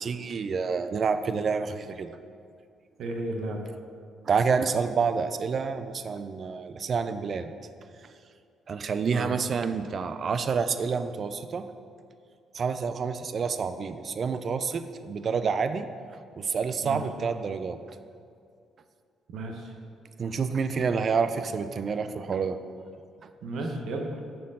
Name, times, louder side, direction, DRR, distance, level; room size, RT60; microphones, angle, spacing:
voice 1, 0.0-2.1 4.3-7.5 8.7-11.6 12.5-15.9 16.4-17.8 20.2-22.6, right 5 dB, 35° right, 10 dB, 0.3 m, -28 dB
voice 2, 3.0-3.6 9.1-9.3 16.8-17.0 19.3-19.7 23.4-24.1, right 2 dB, 55° right, 2 dB, 0.8 m, -33 dB
9.4 x 4.5 x 3.7 m, 2.4 s
cardioid pair, 170°, 0 cm